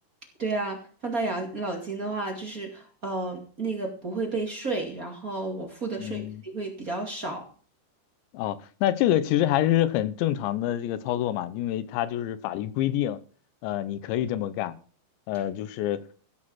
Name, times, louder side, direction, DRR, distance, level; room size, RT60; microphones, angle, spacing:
voice 1, 0.4-7.5, right 3 dB, 30° right, 1.6 m, -32 dB
voice 2, 6.0-6.4 8.3-13.2 13.6-14.7 15.3-16.0, left 12 dB, 85° left, 3.2 m, -26 dB
15.5 x 6.4 x 6.2 m
omnidirectional pair, 5.1 m